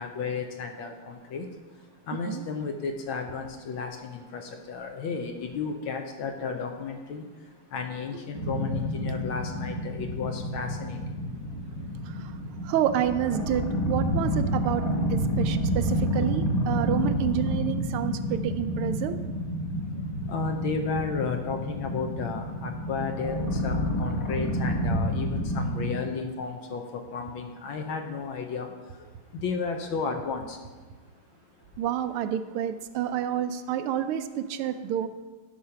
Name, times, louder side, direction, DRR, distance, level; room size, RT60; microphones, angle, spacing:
voice 1, 0.0-1.5 1.7-12.3 12.6-12.7 19.9-30.7 31.6-31.7, left 5 dB, 75° left, 4 dB, 1.5 m, -34 dB
sound 1, 8.3-25.9, equal, 45° left, 1.9 m, -29 dB
voice 2, 12.6-14.8 15.1-19.2 31.8-35.1, right 10 dB, 90° right, 10 dB, 1.5 m, -29 dB
12.5 x 4.3 x 5.7 m, 1.3 s
omnidirectional pair, 2.3 m